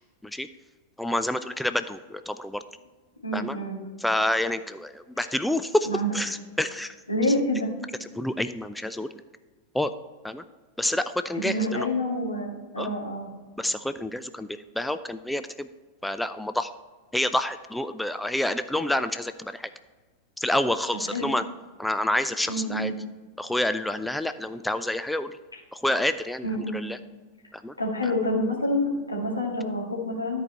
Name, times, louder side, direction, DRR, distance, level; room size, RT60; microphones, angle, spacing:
voice 1, 1.0-2.6 3.3-3.6 4.0-6.9 8.2-9.2 9.7-9.9 10.2-10.4 10.8-11.9 12.8-12.9 13.6-15.7 16.0-16.7 17.1-19.7 20.4-21.4 21.8-22.9 23.4-25.4 25.7-26.5 26.7-27.0 27.5-27.7, left 1 dB, 5° left, 11 dB, 0.3 m, -28 dB
voice 2, 3.2-3.8 5.9-6.1 7.1-7.7 11.3-13.3 21.1-21.3 22.5-22.9 26.4-26.8 27.8-30.4, left 1 dB, 80° left, -3 dB, 2.0 m, -27 dB
13.0 x 4.7 x 4.3 m, 1.4 s
figure-of-eight pair, 90°, 0 cm